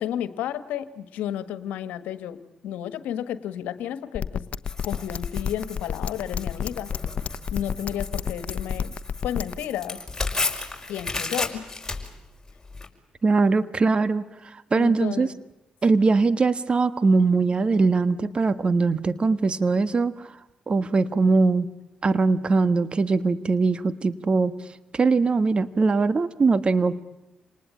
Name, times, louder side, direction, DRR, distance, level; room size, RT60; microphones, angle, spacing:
voice 1, 0.0-2.4 2.6-4.4 4.8-6.9 7.5-8.9 9.2-10.0 10.9-11.6 14.8-15.4, left 11 dB, 85° left, 13 dB, 1.5 m, -32 dB
sound 1, 4.2-9.5, left 7 dB, 60° left, 1.0 m, -28 dB
Tearing, 4.7-12.9, left 3 dB, 20° left, 5.3 m, -34 dB
voice 2, 13.2-15.3 15.8-20.3 20.7-21.7 22.0-24.5 24.9-27.0, right 4 dB, 40° right, 14 dB, 1.4 m, -21 dB
28.5 x 19.5 x 9.0 m, 0.99 s
supercardioid pair, 55°, 3 cm